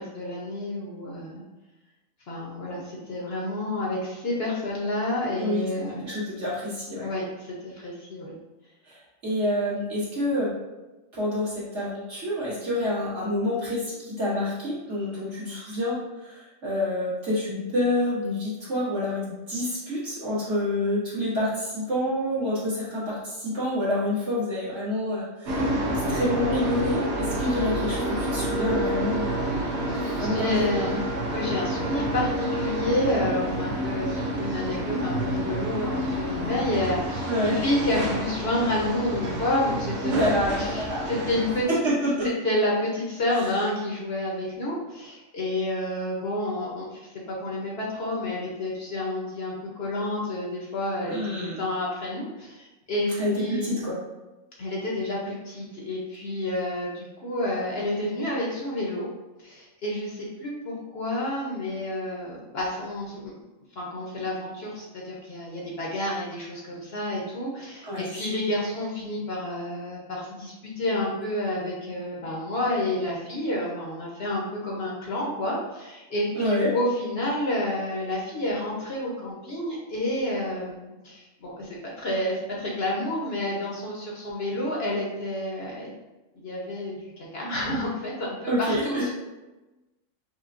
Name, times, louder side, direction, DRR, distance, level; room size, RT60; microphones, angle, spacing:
voice 1, 0.0-1.4 2.3-6.3 7.0-8.3 30.2-31.0 31.3-40.2 40.6-41.7 42.4-47.0 47.4-53.1 53.4-53.7 54.6-59.1 59.4-63.4 63.8-85.9 86.3-89.1, left 1 dB, 55° left, -4 dB, 0.9 m, -29 dB
voice 2, 5.4-5.7 6.0-7.1 8.9-9.0 9.2-10.5 11.1-29.6 30.0-30.5 30.7-31.0 37.3-37.6 40.0-41.0 41.7-42.3 51.1-51.6 53.2-54.0 67.9-68.3 76.4-76.7 88.5-89.1, left 1 dB, 60° right, -10 dB, 1.9 m, -28 dB
sound 1, 25.5-41.6, right 1 dB, 85° right, 1.2 m, -29 dB
5.5 x 2.2 x 2.5 m, 1.1 s
omnidirectional pair, 1.4 m